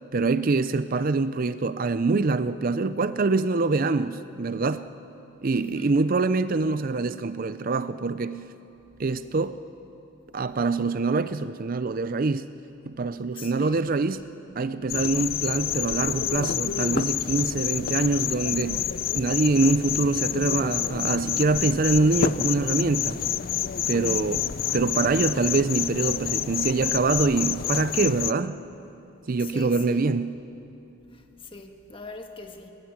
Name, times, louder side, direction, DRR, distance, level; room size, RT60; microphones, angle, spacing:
voice 1, 0.1-4.9 5.4-8.5 9.0-9.6 10.3-12.5 12.9-14.2 14.6-18.9 19.1-23.3 23.9-24.4 24.7-28.6 29.3-30.4, right 3 dB, 45° right, 14 dB, 0.5 m, -24 dB
voice 2, 5.5-6.0 13.4-14.0 24.0-24.4 29.4-30.0 31.1-32.7, left 3 dB, 25° left, 5 dB, 1.6 m, -42 dB
sound 1, 14.9-28.3, left 9 dB, 45° left, 0.5 m, -28 dB
21.0 x 19.0 x 9.6 m, 2.8 s
head